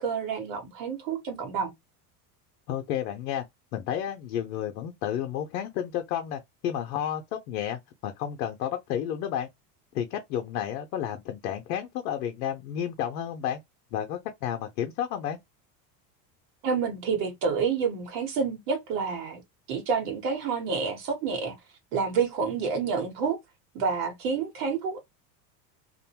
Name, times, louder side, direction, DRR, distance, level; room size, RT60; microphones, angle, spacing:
voice 1, 0.0-1.7 16.6-19.4 19.7-21.6 21.9-23.4 23.7-25.0, right 5 dB, 70° right, 1.3 m, -28 dB
voice 2, 2.7-3.4 3.7-7.2 7.5-9.5 9.9-13.6 13.9-15.4, left 10 dB, 85° left, 0.7 m, -31 dB
2.5 x 2.1 x 2.8 m
supercardioid pair, 95°, 50 cm